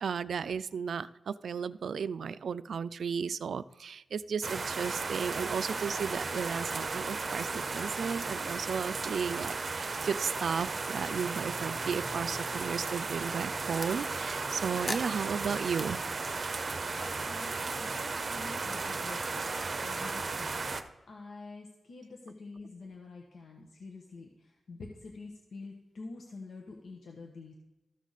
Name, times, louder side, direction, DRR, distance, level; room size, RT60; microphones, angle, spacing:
voice 1, 0.0-16.0, right 6 dB, 75° right, 15 dB, 0.3 m, -34 dB
sound 1, 4.4-20.8, right 4 dB, 45° right, 0.6 m, -35 dB
sound 2, 10.5-13.9 14.9-15.9, left 1 dB, 15° left, 0.6 m, -44 dB
voice 2, 17.2-20.7 21.1-27.5, left 3 dB, 75° left, 1 dB, 1.1 m, -47 dB
13.5 x 6.3 x 4.1 m, 1.0 s
wide cardioid pair, 135°, 0 cm